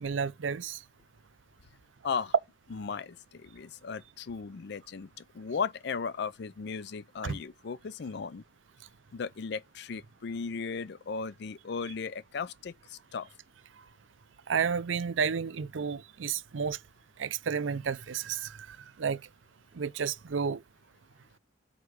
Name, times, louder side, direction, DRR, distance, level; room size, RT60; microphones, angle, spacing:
voice 1, 0.0-0.8 7.2-7.4 14.5-16.8 17.2-19.2 19.8-20.6, right 6 dB, 85° right, 0.5 m, -31 dB
voice 2, 2.7-8.4 9.1-13.3, left 5 dB, 60° left, 0.5 m, -36 dB
4.9 x 4.7 x 6.2 m
head